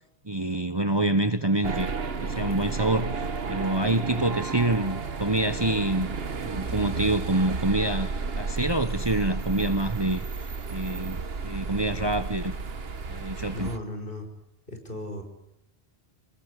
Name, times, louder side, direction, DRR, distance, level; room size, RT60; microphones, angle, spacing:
voice 1, 0.2-1.9 2.2-6.1 6.4-10.2 10.7-12.5 13.1-13.7, right 2 dB, 25° right, 1.2 m, -26 dB
sound 1, 1.6-13.8, right 4 dB, 65° right, 1.6 m, -32 dB
voice 2, 13.5-14.3 14.7-15.2, left 1 dB, 55° left, 6.1 m, -36 dB
27.0 x 21.0 x 9.9 m
omnidirectional pair, 1.1 m